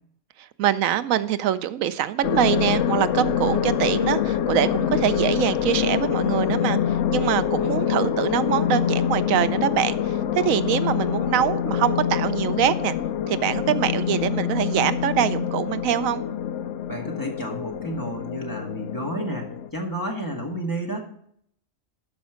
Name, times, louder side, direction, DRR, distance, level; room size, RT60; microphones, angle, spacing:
voice 1, 0.6-6.8 7.1-12.9 13.3-16.2, right 11 dB, 90° right, 14 dB, 1.0 m, -24 dB
sound 1, 2.2-19.7, left 9 dB, 70° left, 0.8 m, -25 dB
voice 2, 16.9-21.1, right 1 dB, 15° left, 0 dB, 1.6 m, -31 dB
12.5 x 5.2 x 5.0 m, 0.67 s
omnidirectional pair, 1.4 m